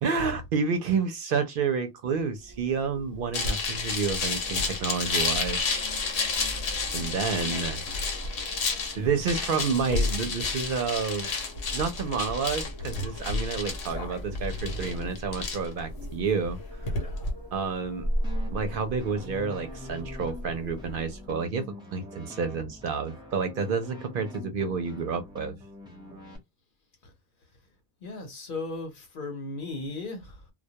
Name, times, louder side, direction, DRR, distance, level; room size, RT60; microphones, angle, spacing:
voice 1, 0.0-5.6 6.9-7.8 9.0-11.3 11.7-17.0 17.5-18.1 18.5-25.5, right 5 dB, 65° right, 0.7 m, -29 dB
Wind, 2.3-21.4, equal, 25° left, 0.8 m, -39 dB
sound 1, 3.3-17.3, left 4 dB, 90° left, 1.0 m, -31 dB
sound 2, 18.2-26.4, left 1 dB, 5° right, 0.7 m, -45 dB
voice 2, 28.0-30.5, left 3 dB, 55° left, 0.9 m, -36 dB
2.2 x 2.1 x 2.7 m
omnidirectional pair, 1.1 m